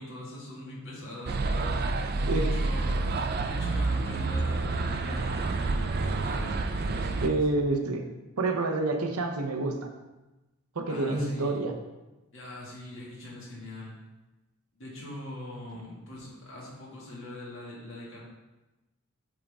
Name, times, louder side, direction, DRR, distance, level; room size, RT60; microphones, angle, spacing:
voice 1, 0.0-1.8 2.2-3.0 3.3-7.4 10.9-11.6 12.3-13.9 14.8-18.2, left 1 dB, 55° left, -5 dB, 2.1 m, -42 dB
sound 1, 1.3-7.3, right 3 dB, 45° right, 0.4 m, -28 dB
voice 2, 7.2-8.0 8.4-9.9 10.8-11.7, right 2 dB, 85° right, 4 dB, 0.8 m, -28 dB
8.5 x 3.7 x 3.5 m, 1.1 s
head